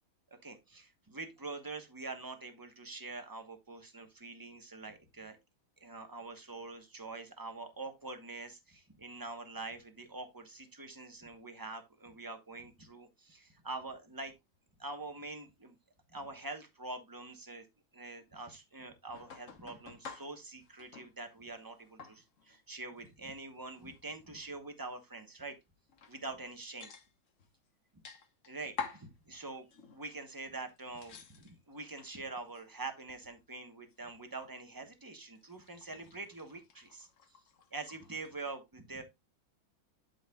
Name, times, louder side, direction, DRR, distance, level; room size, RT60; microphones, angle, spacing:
voice 1, 0.4-5.4 5.8-14.3 14.8-15.7 16.1-17.6 17.9-25.5 26.1-26.9 28.5-29.7 29.9-37.1 37.7-39.0, right 3 dB, 15° right, 0.7 m, -45 dB
sound 1, 19.1-21.2 21.4-22.6 23.0-23.1 23.7-24.9 25.3-25.4 25.9-26.5 26.8-27.5 28.0-29.1 29.7-30.1 30.5-32.2 32.5-33.4 33.7-34.5 35.3-38.4, left 6 dB, 45° left, 1.2 m, -49 dB
12.0 x 5.3 x 2.3 m
omnidirectional pair, 2.2 m